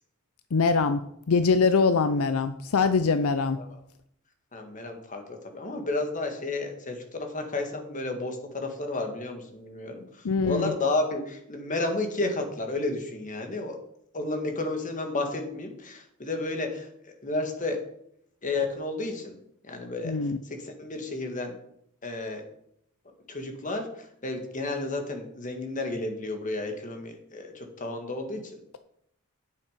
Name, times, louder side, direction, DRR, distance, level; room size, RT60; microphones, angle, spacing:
voice 1, 0.5-3.6 10.2-10.7 20.0-20.4, left 4 dB, 75° left, 11 dB, 0.5 m, -23 dB
voice 2, 4.5-13.8 14.1-17.8 18.4-19.4 19.6-20.2 20.4-21.5 22.0-22.5 23.3-28.6, left 2 dB, 35° left, 4 dB, 1.8 m, -32 dB
9.7 x 7.2 x 5.1 m, 0.71 s
head